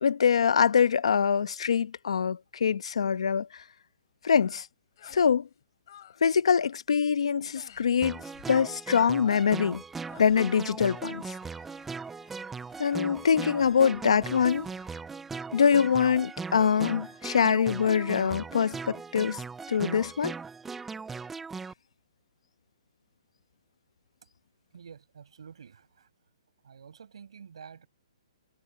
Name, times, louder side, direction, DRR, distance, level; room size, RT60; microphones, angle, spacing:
voice 1, 0.0-3.6 4.2-4.7 5.1-5.5 6.2-8.2 8.5-9.8 10.2-11.3 12.8-14.7 15.5-19.4 19.7-20.3, left 7 dB, 75° left, 1.0 m, -24 dB
sound 1, 4.3-4.6 4.9-5.3 5.6-6.2 6.5-6.8 7.5-7.9 8.3-8.6 9.2-9.7 10.0-10.4, left 11 dB, 40° left, 7.7 m, -53 dB
sound 2, 8.0-21.7, right 4 dB, 5° right, 0.3 m, -39 dB
sound 3, 10.1-15.5 15.8-18.1, left 13 dB, 15° left, 7.8 m, -59 dB
voice 2, 24.7-26.1 26.6-27.9, right 7 dB, 70° right, 6.1 m, -49 dB
hypercardioid pair, 175°, 3 cm